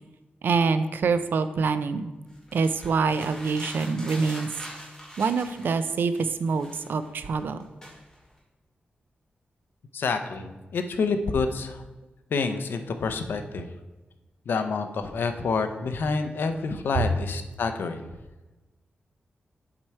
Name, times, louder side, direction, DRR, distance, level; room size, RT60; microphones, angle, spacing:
voice 1, 0.4-2.1 2.5-4.5 5.2-7.6, right 4 dB, 70° right, 11 dB, 0.4 m, -25 dB
sound 1, 2.3-5.9 6.1-8.4, equal, 15° left, 2.1 m, -43 dB
voice 2, 9.9-11.8 12.3-13.7 14.5-18.1, left 4 dB, 75° left, 7 dB, 0.6 m, -28 dB
7.4 x 4.8 x 4.3 m, 1.1 s
wide cardioid pair, 175°, 4 cm